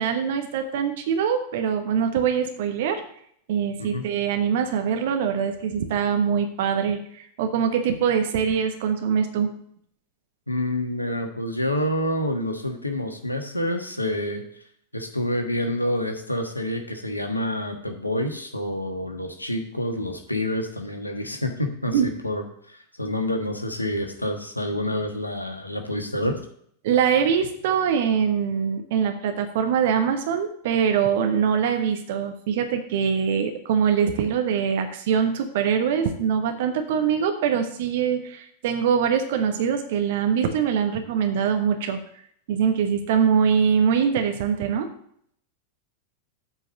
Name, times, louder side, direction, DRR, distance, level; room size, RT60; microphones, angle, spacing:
voice 1, 0.0-3.0 3.5-9.5 21.9-22.1 26.8-42.0 42.5-44.9, right 7 dB, 55° right, 6 dB, 1.0 m, -23 dB
voice 2, 10.5-14.4 14.9-22.4 22.7-26.4, left 1 dB, 85° left, 4 dB, 1.3 m, -28 dB
8.0 x 4.6 x 7.3 m, 0.66 s
figure-of-eight pair, 90°, 0 cm